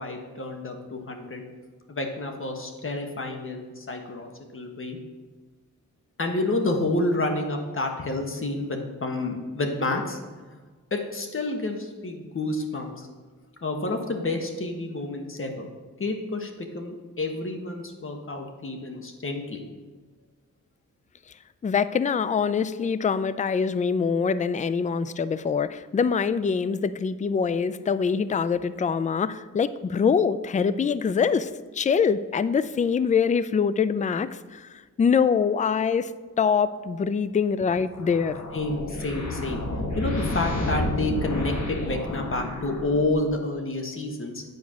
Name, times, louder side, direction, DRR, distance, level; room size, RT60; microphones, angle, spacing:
voice 1, 0.0-1.4 1.9-5.0 6.2-10.2 10.5-10.6 10.9-13.1 13.6-15.7 16.0-19.6 38.5-39.6 39.9-44.4, left 2 dB, 40° left, 3 dB, 1.4 m, -29 dB
voice 2, 21.6-36.1 36.4-38.4, left 6 dB, 25° left, 14 dB, 0.3 m, -24 dB
sound 1, 37.9-43.3, left 2 dB, 60° left, 1.6 m, -30 dB
9.4 x 4.7 x 6.3 m, 1.4 s
cardioid pair, 80°, 32 cm